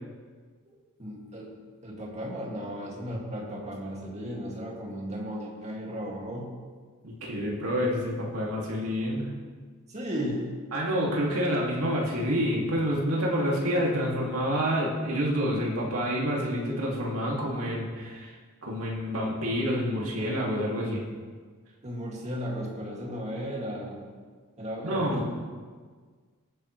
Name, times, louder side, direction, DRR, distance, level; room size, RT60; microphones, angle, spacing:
voice 1, 0.7-1.5 1.8-6.5 9.9-10.5 21.8-24.0 24.6-25.4, equal, 30° right, -2 dB, 2.3 m, -35 dB
voice 2, 7.0-9.3 10.7-18.3 18.6-21.0 24.8-25.2, equal, 70° right, -3 dB, 2.4 m, -28 dB
19.5 x 9.1 x 3.3 m, 1.6 s
head